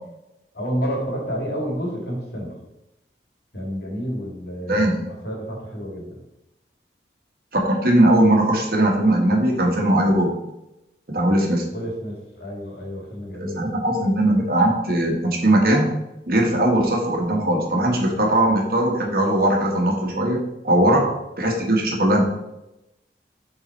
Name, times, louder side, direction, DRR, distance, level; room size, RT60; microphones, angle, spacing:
voice 1, 0.5-2.6 3.5-6.2 11.7-13.7 20.8-21.1, equal, 65° left, -1 dB, 2.0 m, -30 dB
voice 2, 7.5-10.4 11.1-11.7 13.4-15.9 16.3-20.4 20.6-21.0 21.4-22.2, right 1 dB, 55° right, 0 dB, 1.4 m, -19 dB
7.3 x 3.9 x 4.1 m, 0.92 s
head